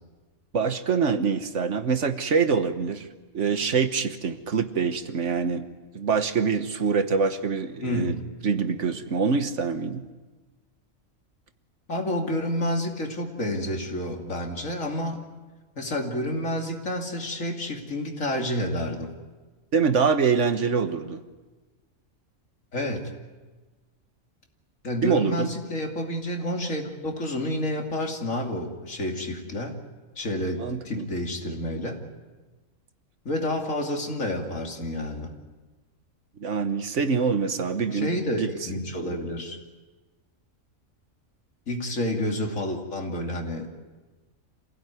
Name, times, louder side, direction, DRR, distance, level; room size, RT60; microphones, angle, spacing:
voice 1, 0.5-3.1 3.3-5.7 5.9-8.2 8.4-10.0 19.7-21.2 25.0-25.5 30.6-31.1 36.4-38.5, right 5 dB, 65° right, 9 dB, 1.5 m, -25 dB
voice 2, 7.8-8.2 11.9-15.2 15.8-19.1 22.7-23.1 24.8-29.7 30.2-32.0 33.2-35.3 37.9-39.6 41.7-43.7, left 1 dB, 75° left, 2 dB, 3.1 m, -29 dB
27.5 x 16.5 x 9.4 m, 1.3 s
omnidirectional pair, 1.4 m